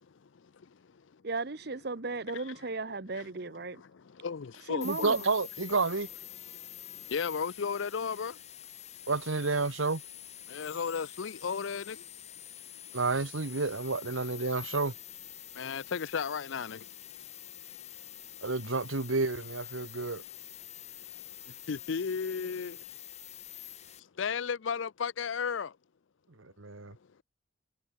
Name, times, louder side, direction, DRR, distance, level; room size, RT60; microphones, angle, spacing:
voice 1, 1.2-3.8 4.7-5.2, right 3 dB, 50° right, 1.0 m, -36 dB
voice 2, 4.2-5.1 7.1-8.3 10.5-12.0 15.6-16.8 21.7-22.8 24.2-25.7, left 6 dB, 70° left, 0.5 m, -33 dB
sound 1, 4.8-24.0, left 12 dB, 35° left, 4.1 m, -47 dB
voice 3, 4.8-6.1 9.1-10.0 12.9-14.9 18.4-20.2 26.4-27.0, right 3 dB, 80° right, 1.4 m, -30 dB
head